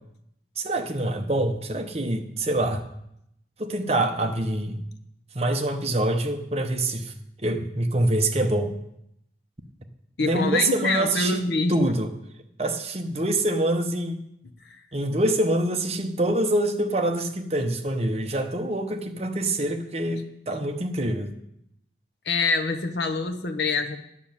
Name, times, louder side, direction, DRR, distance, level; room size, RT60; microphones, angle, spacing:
voice 1, 0.6-2.9 3.6-4.8 5.3-7.1 7.4-8.7 10.2-12.1 12.6-14.3 14.9-21.3, right 1 dB, 35° right, 5 dB, 0.9 m, -25 dB
voice 2, 10.2-11.8 14.7-14.8 22.3-24.0, left 3 dB, 70° left, 7 dB, 0.9 m, -25 dB
9.9 x 6.5 x 7.3 m, 0.78 s
head